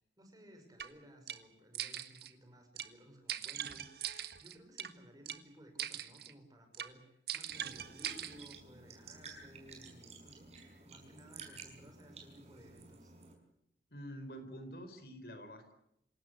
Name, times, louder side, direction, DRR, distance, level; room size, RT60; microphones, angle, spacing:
voice 1, 0.0-4.1 4.4-13.1, equal, 20° right, 5 dB, 6.0 m, -58 dB
sound 1, 0.8-0.9 1.3-1.4 1.7-2.3 2.8-2.9 3.3-4.9 5.3-5.4 5.8-6.3 6.7-6.9 7.3-8.6, right 10 dB, 60° right, 1.6 m, -41 dB
sound 2, 7.5-13.3, right 4 dB, 35° right, 5.7 m, -53 dB
voice 2, 13.9-15.7, equal, 60° left, 9 dB, 4.6 m, -47 dB
27.0 x 18.0 x 8.1 m, 0.79 s
head